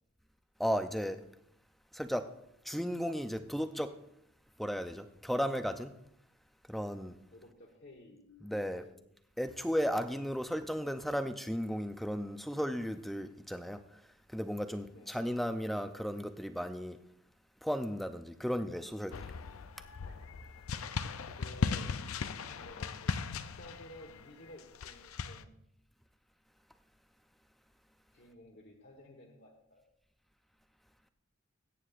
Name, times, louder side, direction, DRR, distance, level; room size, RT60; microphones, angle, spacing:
voice 1, 0.6-1.2 1.9-2.3 2.6-3.9 4.6-5.9 6.7-7.2 8.4-8.8 9.4-13.8 14.3-17.0 17.6-19.2, equal, ahead, 0.5 m, -35 dB
voice 2, 7.3-9.1 14.9-15.1 20.0-20.3 21.3-22.0 22.4-25.5 28.1-29.8, left 1 dB, 50° left, 1.3 m, -55 dB
sound 1, 19.1-25.4, left 5 dB, 80° left, 0.5 m, -38 dB
21.0 x 9.3 x 2.5 m
head